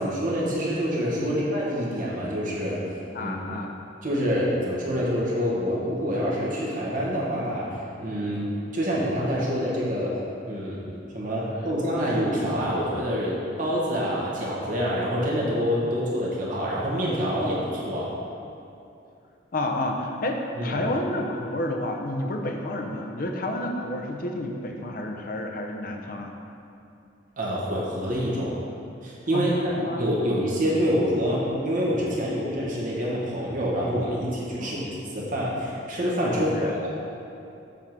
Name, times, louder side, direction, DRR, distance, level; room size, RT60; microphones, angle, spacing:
voice 1, 0.0-2.8 3.2-3.3 4.0-7.7 8.0-10.2 10.5-10.8 11.1-18.1 20.6-20.8 27.4-28.5 29.0-29.5 30.0-36.9, equal, 45° right, -5 dB, 1.5 m, -26 dB
voice 2, 1.2-1.5 3.1-3.7 19.5-26.3 29.3-30.1 34.6-34.9 36.3-36.7, left 1 dB, 50° left, 3 dB, 0.7 m, -30 dB
7.4 x 3.8 x 5.9 m, 2.7 s
head